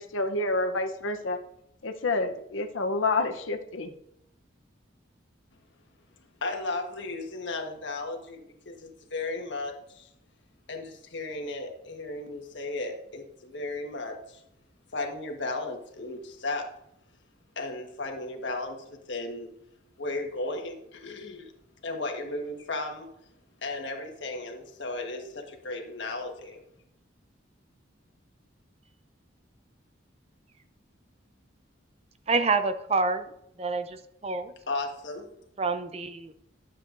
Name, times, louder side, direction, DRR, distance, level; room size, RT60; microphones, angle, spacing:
voice 1, 0.0-1.4 1.8-3.9, left 2 dB, 85° left, 6 dB, 0.8 m, -28 dB
voice 2, 6.4-10.1 10.7-14.4 14.9-16.7 17.5-19.5 20.0-21.5 21.8-23.1 23.6-26.6 34.7-35.3, left 2 dB, 70° left, 3 dB, 1.4 m, -35 dB
voice 3, 32.3-33.3 33.6-34.5 35.6-36.3, right 4 dB, 30° right, 9 dB, 0.5 m, -27 dB
12.0 x 7.7 x 2.6 m, 0.79 s
head